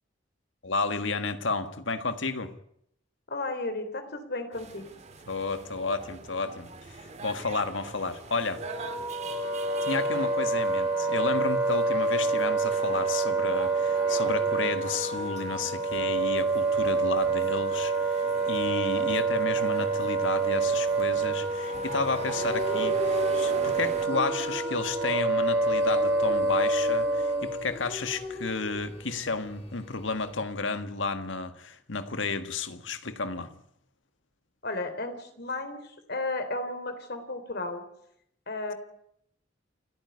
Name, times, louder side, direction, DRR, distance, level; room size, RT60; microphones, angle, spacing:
voice 1, 0.6-2.5 5.3-6.7 7.2-8.6 9.9-33.5, left 4 dB, 85° left, 1.6 m, -32 dB
voice 2, 3.3-4.9 34.6-37.8 38.5-38.7, left 2 dB, 60° left, 3.4 m, -34 dB
sound 1, 4.5-24.1, right 3 dB, 35° right, 2.1 m, -44 dB
Wind instrument woodwind instrument, 8.6-27.7, right 3 dB, 85° right, 4.8 m, -27 dB
sound 2, 22.2-30.4, left 3 dB, 35° left, 4.0 m, -40 dB
28.5 x 9.6 x 9.7 m
head